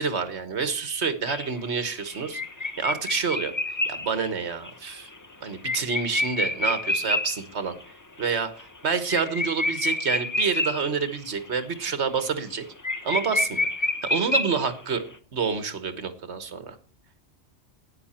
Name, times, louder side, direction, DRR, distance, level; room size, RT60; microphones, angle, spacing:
voice 1, 0.0-3.5 3.8-5.1 5.4-7.7 8.2-12.6 13.0-13.7 14.1-15.0 15.3-16.8, right 5 dB, 70° right, 11 dB, 1.6 m, -28 dB
sound 1, 1.3-7.4 7.8-7.9 8.2-8.3 8.6-11.2 11.5-11.9 12.1-12.2 12.5-12.6 12.8-14.9, left 2 dB, 20° left, 0.6 m, -28 dB
12.5 x 9.7 x 4.3 m, 0.39 s
omnidirectional pair, 1.2 m